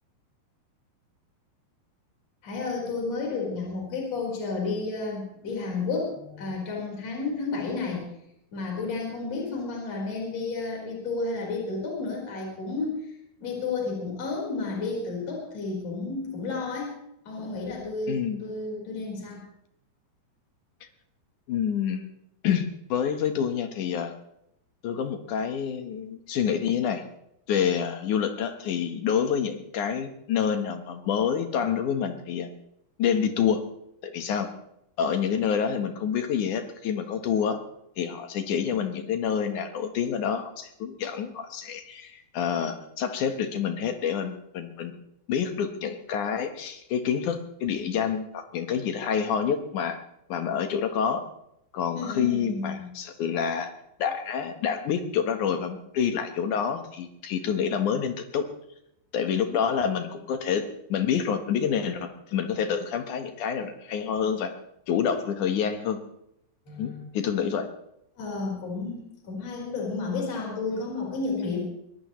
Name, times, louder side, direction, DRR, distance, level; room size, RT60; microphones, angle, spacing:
voice 1, 2.4-8.0 8.5-13.1 13.4-16.9 17.3-19.4 51.9-52.9 66.7-67.1 68.2-71.6, left 3 dB, 40° left, -2 dB, 5.4 m, -31 dB
voice 2, 18.1-18.4 21.5-22.1 22.4-24.1 24.8-27.0 27.5-32.5 33.0-33.6 34.0-34.5 35.0-37.6 38.0-44.9 45.3-50.0 50.3-51.2 51.7-53.7 54.0-58.5 59.1-64.5 64.9-66.0 66.8-67.7, left 7 dB, 65° left, 7 dB, 2.1 m, -27 dB
23.5 x 18.0 x 3.1 m, 0.77 s
omnidirectional pair, 5.0 m